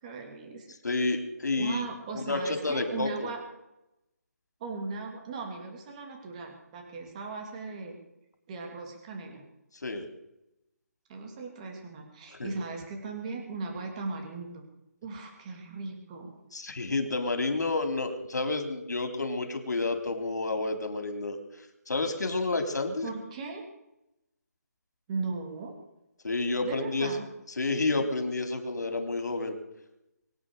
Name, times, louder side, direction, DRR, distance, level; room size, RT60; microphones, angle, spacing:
voice 1, 0.0-0.7 1.6-3.4 4.6-8.0 8.5-9.4 11.1-14.6 15.0-16.3 23.0-23.6 25.1-25.7 26.6-27.2, right 3 dB, 25° right, 2 dB, 3.2 m, -38 dB
voice 2, 0.8-1.8 2.1-3.3 9.8-10.1 12.4-12.5 16.5-21.4 21.9-23.1 26.2-27.1 27.6-29.5, left 3 dB, 85° left, 6 dB, 3.5 m, -30 dB
23.5 x 8.8 x 6.7 m, 0.88 s
hypercardioid pair, 165°, 9 cm